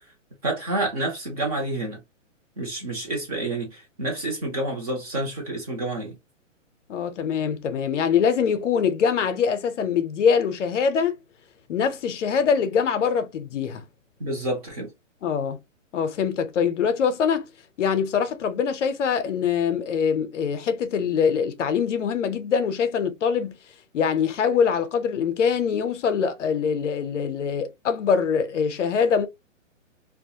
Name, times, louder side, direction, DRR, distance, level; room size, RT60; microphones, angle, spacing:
voice 1, 0.4-2.0 2.6-6.2 14.2-14.9, right 2 dB, 30° right, 0.7 m, -29 dB
voice 2, 6.9-11.2 11.7-13.9 15.2-15.6 15.9-17.5 17.8-23.6 23.9-29.3, left 6 dB, 65° left, 0.6 m, -23 dB
2.3 x 2.0 x 2.7 m
hypercardioid pair, 170°, 39 cm